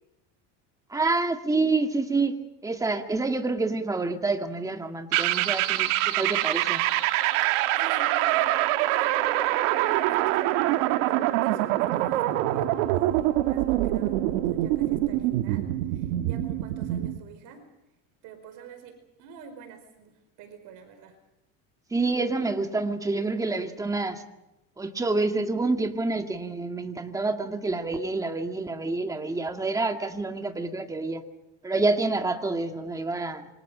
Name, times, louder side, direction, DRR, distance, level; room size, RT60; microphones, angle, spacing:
voice 1, 0.9-6.8 21.9-24.2 24.8-31.2 31.6-33.5, right 3 dB, 10° right, 5 dB, 2.1 m, -28 dB
sound 1, 5.1-17.2, right 15 dB, 85° right, 1.6 m, -25 dB
voice 2, 7.7-17.7 18.2-21.2, right 6 dB, 60° right, 7 dB, 5.1 m, -46 dB
28.0 x 25.5 x 5.1 m, 0.90 s
cardioid pair, 145°, 36 cm